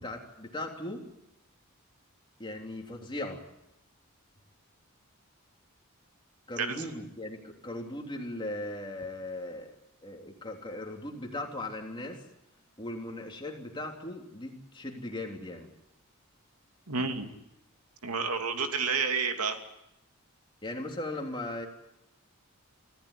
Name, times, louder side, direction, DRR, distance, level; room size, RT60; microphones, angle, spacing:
voice 1, 0.0-1.1 2.4-3.4 6.5-9.7 10.0-12.2 12.8-15.7 20.6-21.7, left 1 dB, 20° left, 2 dB, 3.3 m, -38 dB
voice 2, 16.9-17.3 18.0-19.6, right 5 dB, 90° right, 5 dB, 2.6 m, -30 dB
25.5 x 15.0 x 9.8 m, 0.85 s
head